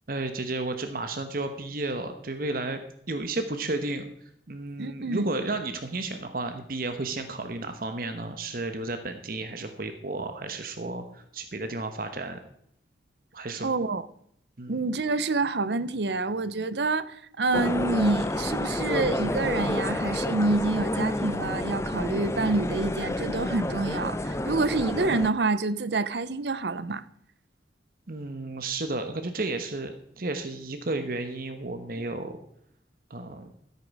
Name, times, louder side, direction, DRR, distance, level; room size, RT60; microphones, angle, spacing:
voice 1, 0.1-2.8 3.1-4.1 4.5-12.4 13.3-13.7 14.6-14.9 28.1-32.4 33.1-33.5, right 2 dB, 50° right, 1.1 m, -32 dB
voice 2, 4.8-5.3 13.6-14.1 14.7-27.0, right 3 dB, 70° right, 0.7 m, -27 dB
sound 1, 17.5-25.3, left 1 dB, 15° left, 0.5 m, -29 dB
14.5 x 8.4 x 4.8 m
head